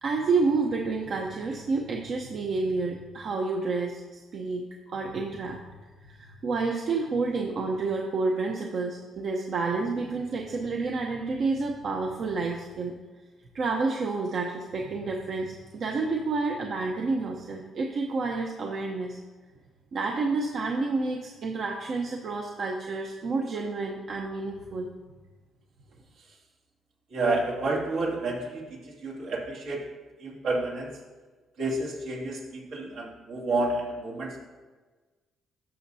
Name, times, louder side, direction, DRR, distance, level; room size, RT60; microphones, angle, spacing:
voice 1, 0.0-4.6 4.9-5.6 6.0-12.9 13.5-19.2 19.9-24.9, right 3 dB, 60° right, 1 dB, 0.9 m, -29 dB
voice 2, 27.1-29.8 30.2-31.0 31.6-34.5, right 2 dB, 80° right, -4 dB, 2.5 m, -30 dB
13.0 x 6.4 x 2.8 m, 1.3 s
cardioid pair, 90°, 0 cm